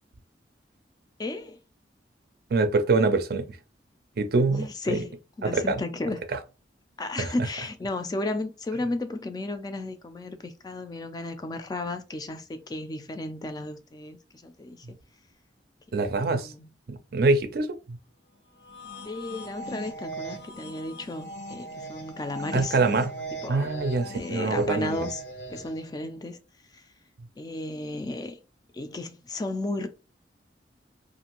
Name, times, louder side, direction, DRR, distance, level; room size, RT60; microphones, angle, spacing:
voice 1, 1.2-1.6 4.5-6.2 7.0-14.9 15.9-16.7 19.0-22.8 23.4-23.7 24.1-25.2 25.5-26.4 26.7-26.9 27.4-28.4 28.7-29.9, left 2 dB, 20° left, 0.3 m, -34 dB
voice 2, 2.5-3.5 4.2-4.7 4.9-5.0 5.4-5.8 7.2-7.3 15.9-16.5 16.9-18.0 22.5-23.1 23.5-25.0, right 3 dB, 60° right, 0.4 m, -24 dB
sound 1, 18.5-25.9, right 1 dB, 75° left, 0.8 m, -39 dB
2.6 x 2.5 x 2.9 m
head